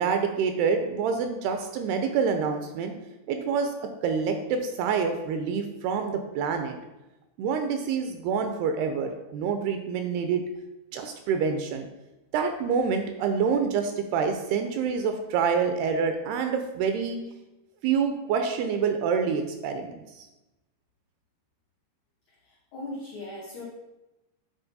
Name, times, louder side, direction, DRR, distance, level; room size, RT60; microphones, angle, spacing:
voice 1, 0.0-2.9 3.3-6.8 7.4-10.4 10.9-11.9 12.3-17.2 17.8-20.3, right 6 dB, 80° right, 6 dB, 2.4 m, -27 dB
voice 2, 22.3-23.6, left 2 dB, 80° left, -4 dB, 1.5 m, -39 dB
9.2 x 4.3 x 4.0 m, 1.0 s
omnidirectional pair, 4.9 m